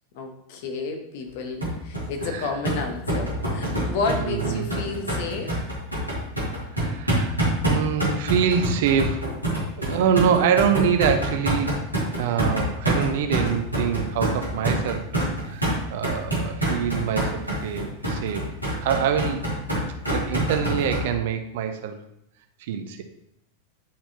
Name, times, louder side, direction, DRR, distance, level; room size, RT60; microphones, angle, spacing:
voice 1, 0.1-5.6, left 4 dB, 50° left, 4 dB, 1.0 m, -31 dB
sound 1, 1.6-21.0, right 1 dB, 90° left, 2.2 m, -26 dB
voice 2, 4.2-4.7 6.8-7.4 7.6-9.3 9.8-11.8 12.2-18.5 18.8-19.5 20.1-22.0 22.6-23.0, right 7 dB, 55° right, 7 dB, 0.6 m, -25 dB
10.0 x 4.3 x 2.8 m, 0.79 s
figure-of-eight pair, 90°, 0 cm